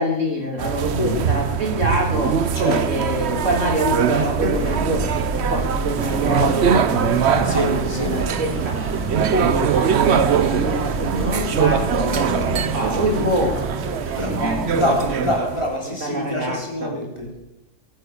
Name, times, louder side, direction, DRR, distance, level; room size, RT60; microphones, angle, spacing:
voice 1, 0.0-2.4 2.8-8.8 9.1-13.6 14.3-15.2 15.9-16.9, equal, 80° right, 2 dB, 3.5 m, -25 dB
sound 1, 0.6-15.8, right 7 dB, 65° right, 1.0 m, -22 dB
voice 2, 2.5-3.0 7.4-8.1 14.2-14.4 14.7-17.4, left 1 dB, 25° left, -1 dB, 4.3 m, -25 dB
sound 2, 4.5-15.4, right 2 dB, 15° right, 0.7 m, -30 dB
22.0 x 9.3 x 6.9 m, 0.90 s
omnidirectional pair, 1.3 m